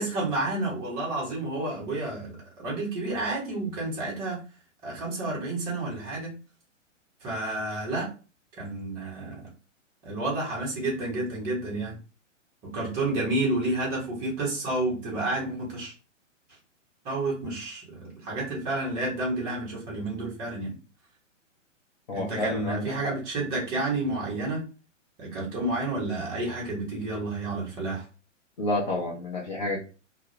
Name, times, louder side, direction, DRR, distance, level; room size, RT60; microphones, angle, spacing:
voice 1, 0.0-4.4 4.8-6.4 7.2-8.1 8.6-9.4 10.0-12.0 12.6-15.9 17.0-20.8 22.1-24.6 25.2-28.0, right 2 dB, 15° right, -4 dB, 0.6 m, -30 dB
voice 2, 22.1-23.1 28.6-29.8, left 2 dB, 40° left, -4 dB, 0.5 m, -30 dB
2.1 x 2.0 x 2.9 m, 0.34 s
figure-of-eight pair, 115°, 38 cm